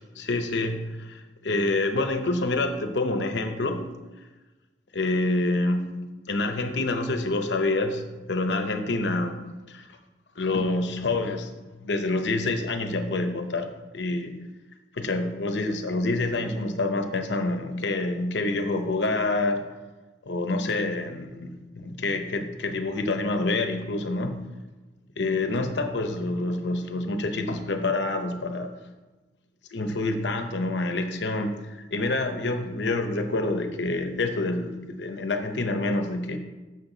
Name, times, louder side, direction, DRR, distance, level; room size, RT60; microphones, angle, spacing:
voice 1, 0.2-3.8 4.9-6.0 6.3-8.0 8.3-9.4 9.7-9.9 10.4-11.5 11.8-14.3 14.9-19.6 20.2-24.4 25.2-28.7 29.7-36.4, left 2 dB, 75° left, 6 dB, 0.8 m, -27 dB
7.3 x 6.7 x 3.9 m, 1.2 s
head